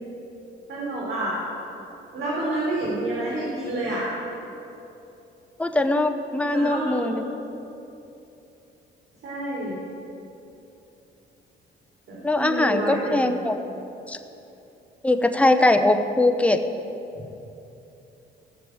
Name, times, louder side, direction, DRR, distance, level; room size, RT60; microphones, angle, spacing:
voice 1, 0.7-1.4 2.1-4.1 6.5-7.1 9.2-9.7 12.1-13.3, right 1 dB, 65° right, -6 dB, 3.6 m, -28 dB
voice 2, 5.6-7.2 12.2-13.5 14.1-14.2 15.0-16.6, left 2 dB, 5° left, 7 dB, 0.8 m, -21 dB
15.5 x 7.0 x 7.9 m, 2.9 s
cardioid pair, 90°, 20 cm